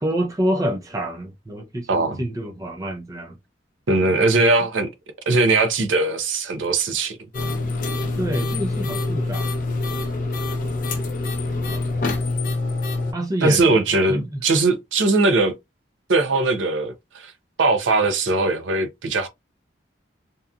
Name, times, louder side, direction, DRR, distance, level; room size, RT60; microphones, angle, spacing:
voice 1, 0.0-3.4 8.2-9.5 13.1-13.8 14.1-14.4, right 1 dB, 20° right, 0.4 m, -27 dB
voice 2, 1.9-2.2 3.9-4.9 5.3-7.2 13.4-15.6 16.1-17.3 17.6-19.3, right 3 dB, 80° right, 0.6 m, -20 dB
sound 1, 7.3-13.1, left 2 dB, 45° left, 0.6 m, -25 dB
2.8 x 2.4 x 2.2 m
head